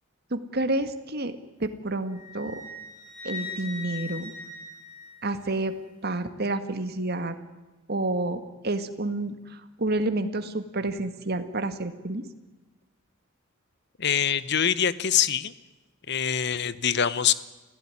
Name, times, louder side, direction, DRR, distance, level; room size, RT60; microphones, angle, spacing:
voice 1, 0.3-2.6 3.2-4.3 5.2-5.8 6.0-7.4 7.9-12.2, right 2 dB, 50° right, 9 dB, 1.8 m, -29 dB
Wind instrument woodwind instrument, 2.1-5.6, left 3 dB, 40° left, 7.7 m, -40 dB
voice 2, 14.0-15.5 16.1-17.3, left 8 dB, 55° left, 16 dB, 1.0 m, -24 dB
28.0 x 16.0 x 9.8 m, 1.2 s
head